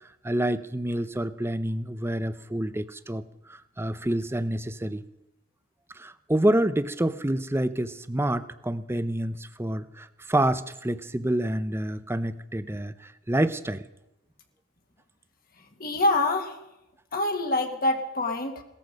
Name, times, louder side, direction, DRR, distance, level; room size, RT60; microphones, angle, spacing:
voice 1, 0.2-5.0 5.9-13.8, right 1 dB, 10° right, 13 dB, 0.6 m, -28 dB
voice 2, 15.8-16.6 17.1-18.6, left 2 dB, 45° left, 4 dB, 1.7 m, -25 dB
18.0 x 14.0 x 5.2 m, 0.90 s
head